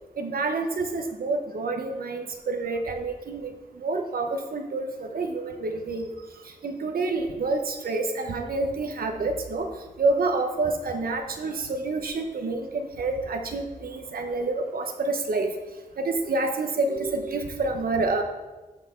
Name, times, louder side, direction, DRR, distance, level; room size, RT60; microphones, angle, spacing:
voice 1, 0.2-6.1 6.4-9.7 10.0-15.5 16.0-18.2, right 3 dB, 90° right, 4 dB, 0.9 m, -28 dB
13.0 x 5.9 x 3.7 m, 1.2 s
wide cardioid pair, 140°, 15 cm